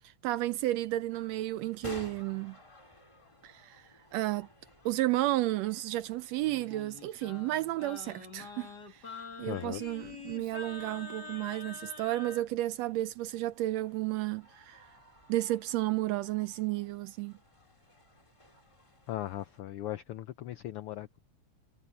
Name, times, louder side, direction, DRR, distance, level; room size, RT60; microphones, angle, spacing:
voice 1, 0.2-2.6 3.4-3.8 4.1-4.5 4.8-8.7 9.4-14.8 15.3-17.3, right 16 dB, 80° right, 1.6 m, -32 dB
sound 1, 1.1-19.6, left 2 dB, 10° left, 1.9 m, -55 dB
Singing, 6.4-12.4, left 4 dB, 35° left, 2.8 m, -46 dB
voice 2, 9.5-9.8 19.1-21.2, left 13 dB, 85° left, 1.2 m, -38 dB
omnidirectional pair, 3.3 m